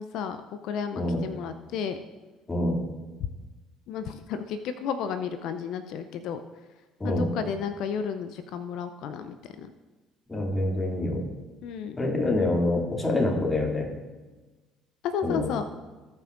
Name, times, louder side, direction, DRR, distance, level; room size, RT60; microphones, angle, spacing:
voice 1, 0.0-2.0 3.9-6.4 7.0-9.7 11.6-12.0 15.0-15.6, left 7 dB, 65° left, 10 dB, 0.5 m, -32 dB
voice 2, 2.5-2.8 7.0-7.3 10.3-11.2 12.0-13.9 15.2-15.5, left 2 dB, 20° left, -1 dB, 2.6 m, -26 dB
18.0 x 6.0 x 2.5 m, 1.2 s
hypercardioid pair, 55°, 0 cm